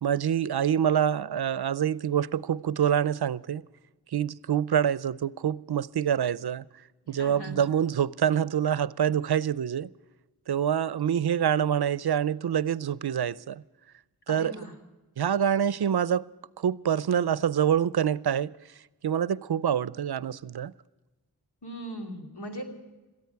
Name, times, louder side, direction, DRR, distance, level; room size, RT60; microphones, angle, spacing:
voice 1, 0.0-3.6 4.1-6.6 7.1-9.9 10.5-13.6 14.3-14.5 15.2-16.3 16.6-18.5 19.0-20.7, right 9 dB, 80° right, 0.5 m, -26 dB
voice 2, 7.0-7.6 14.3-14.7 21.6-22.6, equal, 85° left, 2.9 m, -39 dB
22.0 x 14.0 x 4.6 m
wide cardioid pair, 45°, 38 cm